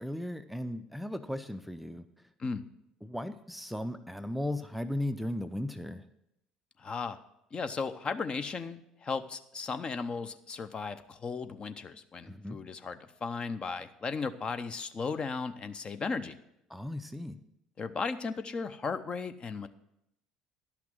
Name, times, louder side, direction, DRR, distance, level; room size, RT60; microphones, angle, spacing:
voice 1, 0.0-2.0 3.0-6.0 12.3-12.6 16.7-17.4, left 1 dB, 5° right, 10 dB, 0.5 m, -36 dB
voice 2, 6.8-7.2 7.5-16.4 17.8-19.7, left 4 dB, 30° left, 10 dB, 0.7 m, -36 dB
11.5 x 5.9 x 7.5 m, 0.81 s
figure-of-eight pair, 60°, 3 cm